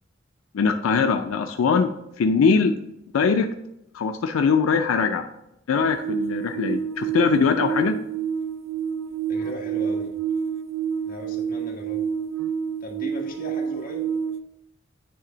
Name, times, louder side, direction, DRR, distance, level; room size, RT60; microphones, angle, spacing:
voice 1, 0.5-1.9 2.2-2.7 3.1-3.5 3.9-5.2 5.7-8.0, left 5 dB, 90° left, 7 dB, 0.4 m, -21 dB
sound 1, 5.8-14.4, right 7 dB, 85° right, 0.4 m, -28 dB
voice 2, 9.3-10.1 11.0-12.1 12.8-14.2, equal, 45° left, -2 dB, 1.5 m, -37 dB
9.5 x 3.4 x 3.8 m, 0.85 s
head